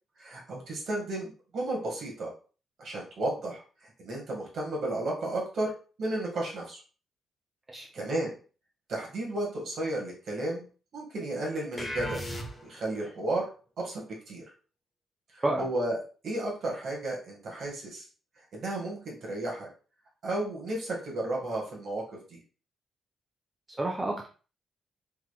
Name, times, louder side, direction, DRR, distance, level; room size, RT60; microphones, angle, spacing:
voice 1, 0.2-2.3 2.8-3.6 4.0-5.7 6.0-6.8 7.9-8.4 8.9-10.7 10.9-12.2 12.6-13.5 13.8-14.4 15.3-18.1 18.5-19.7 20.2-22.0 22.3-22.4, right 1 dB, 65° right, -2 dB, 1.6 m, -33 dB
sound 1, 11.8-12.9, equal, 20° left, 0.8 m, -36 dB
voice 2, 23.8-24.3, right 2 dB, 25° right, 0 dB, 0.7 m, -29 dB
3.6 x 3.0 x 2.2 m, 0.37 s
supercardioid pair, 55°, 0 cm